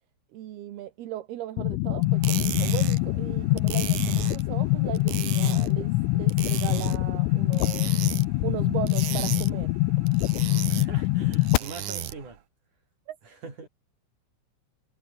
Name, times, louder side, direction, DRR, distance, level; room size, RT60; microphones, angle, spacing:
voice 1, 0.3-8.0 8.4-9.7 13.1-13.2, right 13 dB, 65° right, 3.1 m, -37 dB
sound 1, 1.6-11.6, left 20 dB, 85° left, 3.4 m, -24 dB
sound 2, 2.0-12.4, right 12 dB, 85° right, 1.7 m, -36 dB
voice 2, 10.7-12.4 13.2-13.7, right 4 dB, 40° right, 8.5 m, -42 dB
omnidirectional pair, 5.7 m